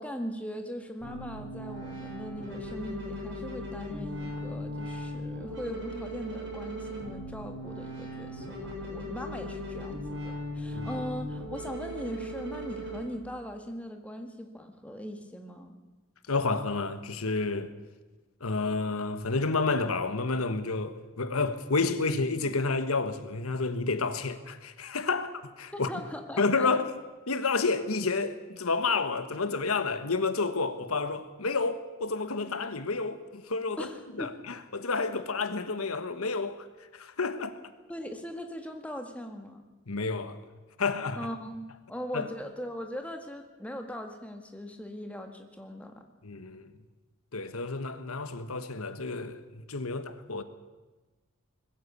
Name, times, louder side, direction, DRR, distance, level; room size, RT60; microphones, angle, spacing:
voice 1, 0.0-15.8 25.7-26.7 33.8-34.4 37.9-39.6 41.2-46.0, equal, 5° left, 1.7 m, -40 dB
sound 1, 1.0-13.0, equal, 55° right, 7.2 m, -38 dB
voice 2, 16.3-17.7 18.4-25.9 26.4-26.9 27.3-33.9 34.2-36.7 36.9-37.6 39.9-40.4 40.8-41.3 42.1-42.3 46.2-46.7 47.3-50.4, left 3 dB, 85° left, 1.3 m, -30 dB
21.0 x 15.0 x 8.5 m
head